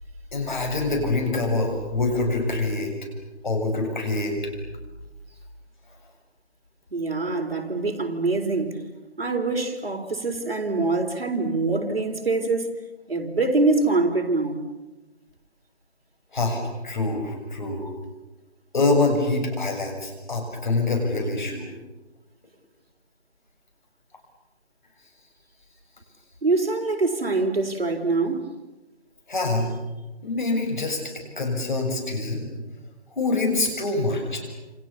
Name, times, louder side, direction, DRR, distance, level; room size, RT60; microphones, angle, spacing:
voice 1, 0.3-2.9 3.4-4.4 16.3-17.9 18.7-21.7 29.3-29.8 30.2-31.0 31.4-32.5 33.1-34.4, left 2 dB, 45° left, 7.3 m, -25 dB
voice 2, 6.9-8.8 9.2-12.7 13.1-14.6 26.4-28.5, right 3 dB, 60° right, 4.0 m, -24 dB
29.5 x 28.5 x 7.1 m
figure-of-eight pair, 165°, 34 cm